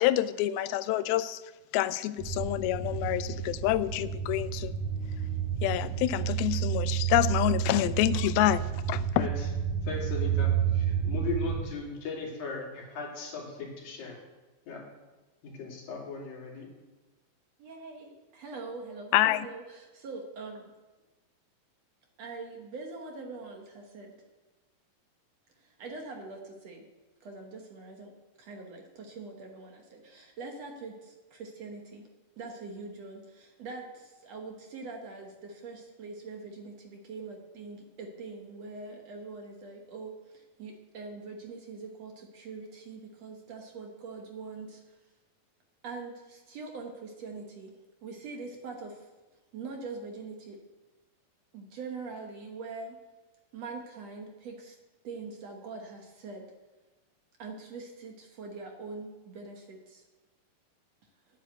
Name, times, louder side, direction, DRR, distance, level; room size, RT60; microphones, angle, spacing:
voice 1, 0.0-1.4 1.7-4.7 5.6-9.3 19.1-19.5, left 15 dB, 90° left, 2.5 m, -27 dB
sound 1, 2.2-11.6, right 9 dB, 85° right, 3.5 m, -30 dB
voice 2, 9.1-9.5 9.8-14.2 14.7-14.9 15.4-16.7, left 4 dB, 70° left, 4.2 m, -37 dB
voice 3, 17.6-20.7 22.2-24.1 25.6-26.9 27.2-28.1 28.4-32.1 32.4-45.0 45.8-49.1 49.5-50.6 51.5-53.0 53.5-54.8 55.0-56.5 57.4-60.0, right 4 dB, 60° right, 1.9 m, -43 dB
9.7 x 9.0 x 8.1 m
omnidirectional pair, 4.3 m